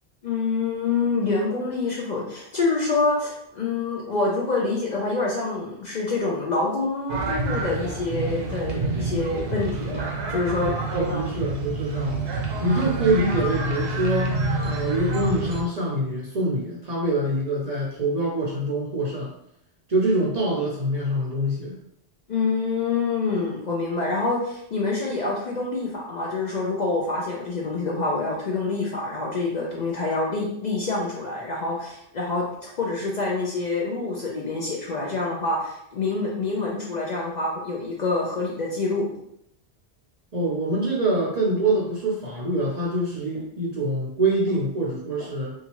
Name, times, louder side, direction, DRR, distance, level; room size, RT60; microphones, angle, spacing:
voice 1, 0.2-10.7 11.1-11.3 22.3-39.1, left 3 dB, 55° left, -3 dB, 0.6 m, -26 dB
sound 1, 7.1-15.6, right 2 dB, 85° right, 0.9 m, -28 dB
voice 2, 10.9-12.2 12.6-14.4 14.6-19.3 19.9-21.8 40.3-45.5, right 1 dB, 45° right, -4 dB, 0.6 m, -25 dB
2.7 x 2.4 x 2.9 m, 0.75 s
omnidirectional pair, 1.1 m